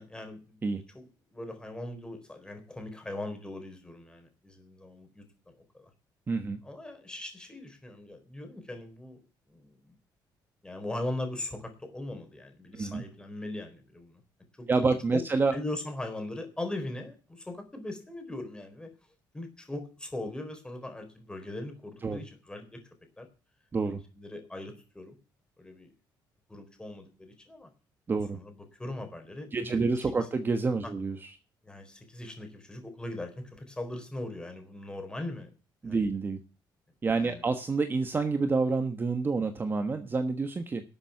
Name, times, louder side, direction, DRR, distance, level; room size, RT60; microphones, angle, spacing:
voice 1, 0.0-0.6 0.9-5.3 5.7-5.9 6.6-9.2 9.5-10.0 10.6-14.2 14.6-14.7 15.1-15.2 15.5-18.9 19.3-22.8 23.2-23.3 23.9-25.2 25.6-25.9 26.5-27.7 28.3-29.9 30.8-30.9 31.6-35.5 35.8-36.1 37.1-37.4, left 1 dB, 10° left, 5 dB, 4.1 m, -40 dB
voice 2, 6.3-6.6 12.7-13.0 14.7-15.6 22.0-22.2 23.7-24.0 28.1-28.4 29.5-31.2 35.8-36.4 37.0-40.8, right 4 dB, 25° right, 8 dB, 1.2 m, -28 dB
12.5 x 7.5 x 8.3 m, 0.35 s
cardioid pair, 140°, 8 cm